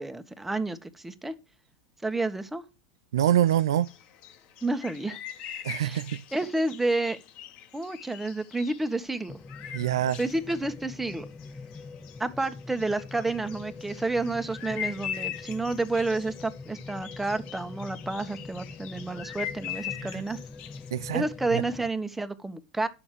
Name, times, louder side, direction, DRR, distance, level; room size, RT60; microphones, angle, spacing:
voice 1, 0.0-1.3 2.0-2.6 4.6-5.2 5.8-6.0 6.3-7.2 7.7-9.3 10.2-11.2 12.2-20.4 21.1-22.9, right 2 dB, 10° right, 1.7 m, -30 dB
voice 2, 3.1-3.9 5.6-6.2 9.7-10.2 20.1-20.2 20.9-21.2 21.5-21.6, right 11 dB, 80° right, 0.5 m, -25 dB
sound 1, 3.2-21.7, left 9 dB, 50° left, 1.8 m, -42 dB
sound 2, 9.3-21.9, left 4 dB, 15° left, 0.7 m, -43 dB
11.5 x 7.2 x 5.1 m
hypercardioid pair, 90°, 2 cm